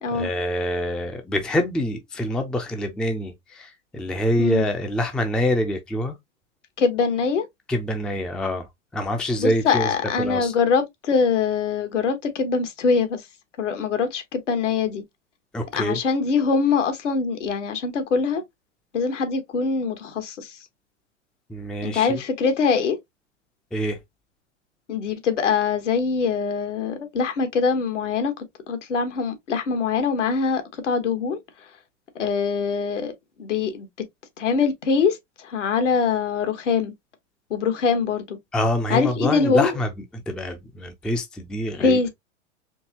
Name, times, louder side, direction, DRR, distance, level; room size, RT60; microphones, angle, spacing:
voice 1, 0.1-6.2 7.7-8.7 8.9-10.5 15.5-16.0 21.5-22.2 23.7-24.0 38.5-39.9 40.3-42.0, left 1 dB, ahead, 0.4 m, -25 dB
voice 2, 6.8-7.4 9.4-13.2 13.6-15.0 15.8-18.4 18.9-20.6 21.8-23.0 24.9-28.3 28.7-31.4 32.1-33.1 33.4-33.9 34.4-36.9 37.5-38.4 38.9-39.7 41.8-42.1, left 5 dB, 75° left, 1.3 m, -23 dB
4.5 x 2.8 x 2.8 m
hypercardioid pair, 105°, 37 cm